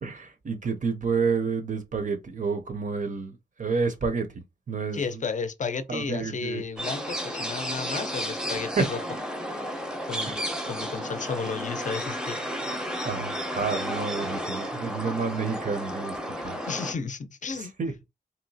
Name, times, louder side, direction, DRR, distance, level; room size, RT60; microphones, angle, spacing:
voice 1, 0.0-4.3 4.7-5.0 5.9-6.6 8.6-8.9 10.3-10.4 13.0-16.6 17.6-17.9, right 4 dB, 50° right, 0.5 m, -29 dB
voice 2, 4.9-9.0 10.1-12.5 16.7-17.7, left 5 dB, 45° left, 0.5 m, -33 dB
sound 1, 6.8-16.9, equal, 5° right, 0.6 m, -32 dB
3.0 x 2.8 x 2.7 m
wide cardioid pair, 145°, 17 cm